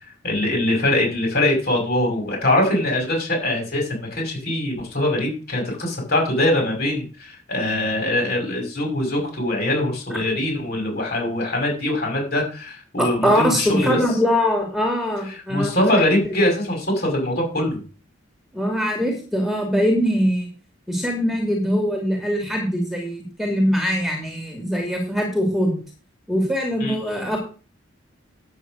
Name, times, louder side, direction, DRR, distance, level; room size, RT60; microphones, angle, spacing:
voice 1, 0.2-14.0 15.5-17.8 26.8-27.0, left 1 dB, 50° left, 1 dB, 5.8 m, -22 dB
voice 2, 13.0-15.7 16.2-16.3 18.5-20.5 20.9-25.8 26.3-27.4, equal, ahead, 1 dB, 2.5 m, -22 dB
9.5 x 8.2 x 6.2 m, 0.37 s
head